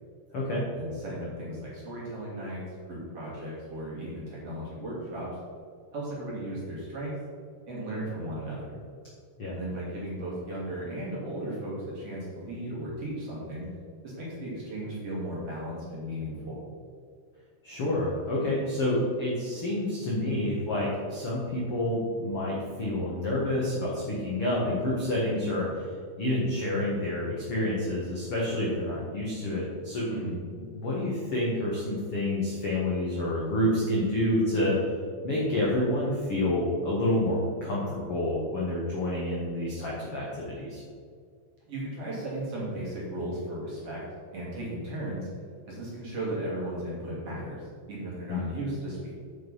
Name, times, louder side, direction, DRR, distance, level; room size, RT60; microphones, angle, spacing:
voice 1, 0.7-5.3 5.9-7.2 7.7-8.8 9.5-13.7 14.0-16.6 30.1-30.4 41.7-44.0 44.3-45.3 45.6-49.1, right 1 dB, 40° right, -7 dB, 3.1 m, -36 dB
voice 2, 17.6-25.9 26.2-30.1 30.5-34.8 35.2-40.8 48.3-48.4, left 1 dB, 55° left, -5 dB, 1.6 m, -28 dB
9.2 x 6.4 x 5.5 m, 2.1 s
omnidirectional pair, 4.9 m